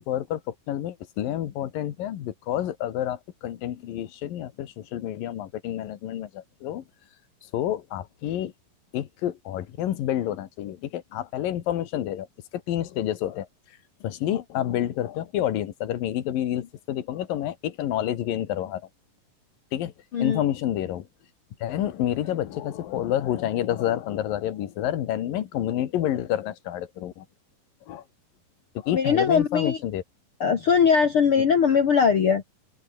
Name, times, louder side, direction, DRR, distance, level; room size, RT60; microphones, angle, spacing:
voice 1, 0.0-6.8 7.5-8.5 8.9-12.3 12.5-13.5 14.0-18.8 19.7-19.9 20.2-21.1 21.6-27.3 27.9-28.0 28.8-30.0, left 12 dB, 75° left, 3.3 m, -29 dB
voice 2, 28.9-29.8 30.4-32.4, left 6 dB, 45° left, 2.1 m, -20 dB
open air
omnidirectional pair, 4.1 m